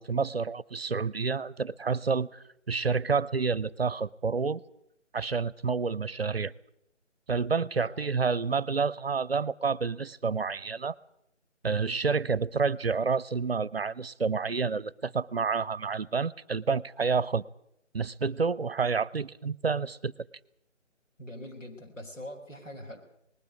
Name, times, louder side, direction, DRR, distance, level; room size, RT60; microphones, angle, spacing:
voice 1, 0.0-4.6 5.1-6.5 7.3-10.9 11.6-17.4 17.9-20.1, right 5 dB, 50° right, 0.8 m, -29 dB
voice 2, 7.8-8.4 21.2-23.0, left 1 dB, 85° left, 5.6 m, -43 dB
20.0 x 15.0 x 9.5 m
figure-of-eight pair, 160°, 37 cm